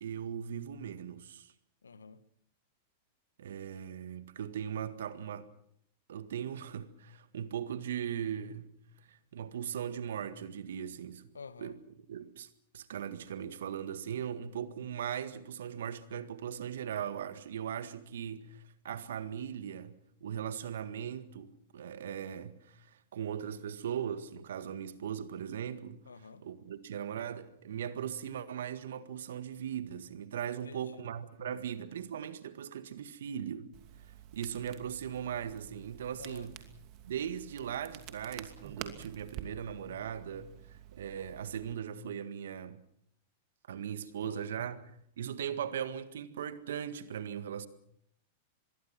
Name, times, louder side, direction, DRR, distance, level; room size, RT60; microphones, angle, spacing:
voice 1, 0.0-1.5 3.4-5.5 6.1-8.7 9.1-11.2 11.6-11.8 12.1-12.5 12.7-26.0 26.4-33.7 34.3-36.6 37.0-42.8 43.7-47.7, right 9 dB, 70° right, 1.8 m, -39 dB
voice 2, 1.8-2.2 11.3-11.8 26.0-26.4 30.6-31.1 36.2-36.5 44.0-44.4, left 5 dB, 85° left, 1.6 m, -49 dB
Crackle, 33.7-41.7, right 11 dB, 45° right, 2.6 m, -49 dB
25.0 x 22.0 x 6.1 m
hypercardioid pair, 100°, 0 cm